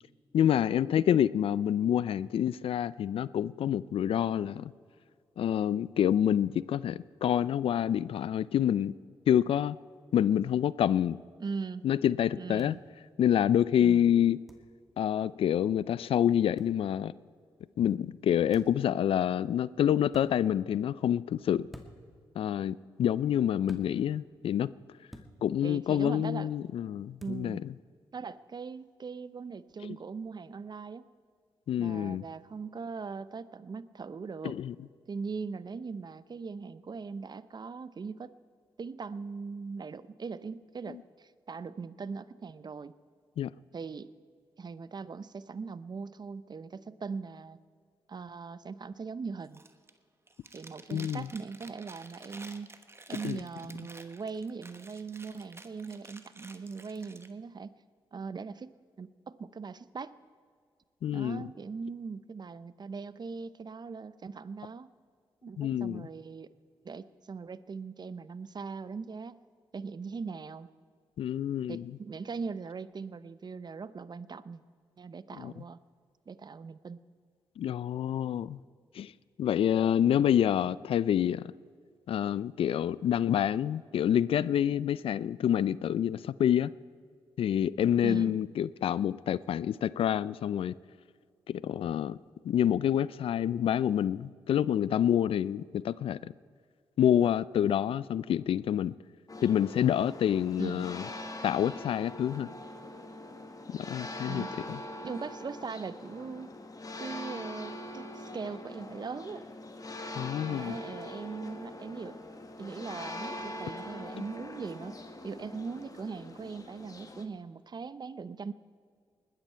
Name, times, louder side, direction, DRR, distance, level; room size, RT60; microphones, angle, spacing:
voice 1, 0.3-4.7 5.4-8.9 9.3-9.8 10.1-11.2 11.8-12.8 13.2-14.4 15.0-17.1 17.8-21.7 22.4-24.7 25.4-27.6 31.7-32.2 34.4-34.7 43.4-43.5 50.9-51.3 53.2-53.4 61.0-61.5 65.6-66.1 71.2-71.9 75.4-75.5 77.6-78.6 79.0-79.1 79.4-81.5 82.1-86.7 87.4-90.7 91.5-92.2 92.4-96.3 97.0-98.9 99.4-101.0 101.4-102.5 103.7-104.8 110.2-110.8, left 10 dB, 70° left, 19 dB, 0.4 m, -27 dB
voice 2, 11.4-11.9 12.4-12.8 13.8-14.1 25.6-26.5 27.2-27.7 28.1-31.0 31.8-34.6 35.1-38.3 38.8-42.9 43.7-44.1 44.6-47.6 48.1-49.6 50.5-52.7 53.1-57.7 58.1-60.1 61.1-64.9 65.4-66.5 66.8-69.4 69.7-70.7 71.7-74.6 75.0-75.8 76.3-77.0 88.0-88.4 100.6-100.9 104.3-104.5 105.0-106.5 107.0-109.4 110.5-112.2 112.6-118.5, right 5 dB, 45° right, 16 dB, 0.7 m, -40 dB
sound 1, 12.6-12.7 14.5-14.7 16.6-16.7 18.5-18.8 20.1-20.3 21.7-22.1 23.7-23.9 25.1-25.3 27.2-27.4, equal, ahead, 2.2 m, -49 dB
Chewing mastication, 49.4-50.0 50.3-57.3, right 2 dB, 25° right, 1.2 m, -51 dB
sound 2, 99.3-117.2, left 1 dB, 35° left, 1.6 m, -43 dB
20.0 x 12.5 x 4.5 m, 2.1 s
supercardioid pair, 45°, 10 cm